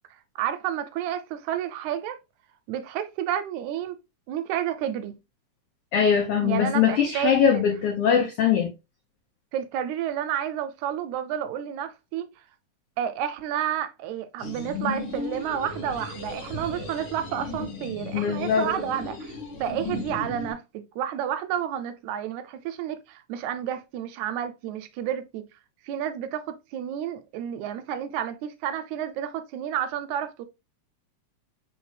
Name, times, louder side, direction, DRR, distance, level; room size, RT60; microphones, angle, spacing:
voice 1, 0.4-2.2 2.7-4.0 4.3-5.1 6.4-7.6 9.5-12.3 13.0-19.4 19.6-25.5 25.8-30.4, right 10 dB, 80° right, 1.8 m, -30 dB
voice 2, 5.9-8.7 18.1-18.7, left 8 dB, 85° left, 1.2 m, -22 dB
sound 1, 14.4-20.5, left 3 dB, 50° left, 1.7 m, -35 dB
4.3 x 3.6 x 3.2 m
omnidirectional pair, 3.5 m